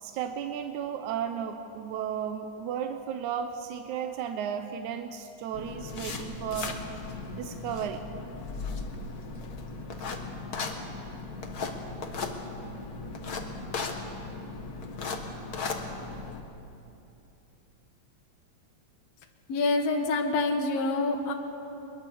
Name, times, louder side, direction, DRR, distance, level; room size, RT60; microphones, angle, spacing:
voice 1, 0.0-6.8 7.4-8.1, right 8 dB, 85° right, 7 dB, 2.3 m, -34 dB
sound 1, 5.5-16.4, left 3 dB, 40° left, 1.4 m, -37 dB
voice 2, 19.5-21.3, left 3 dB, 65° left, 4 dB, 2.6 m, -26 dB
22.0 x 21.5 x 7.0 m, 2.9 s
omnidirectional pair, 3.3 m